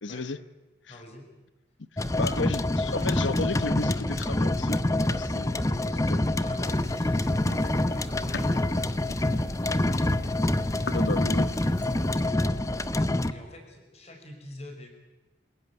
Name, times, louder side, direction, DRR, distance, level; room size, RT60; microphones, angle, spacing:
voice 1, 0.0-0.4 0.9-1.0 2.2-4.8 5.1-5.5 6.1-6.2 10.9-12.0, left 3 dB, 85° left, 1.0 m, -33 dB
voice 2, 0.9-1.3 6.4-9.8 13.3-14.9, left 1 dB, 35° left, 5.6 m, -47 dB
sound 1, 2.0-13.3, left 1 dB, 15° left, 0.7 m, -26 dB
sound 2, 6.7-12.2, left 3 dB, 65° left, 1.4 m, -43 dB
27.0 x 16.5 x 9.5 m
head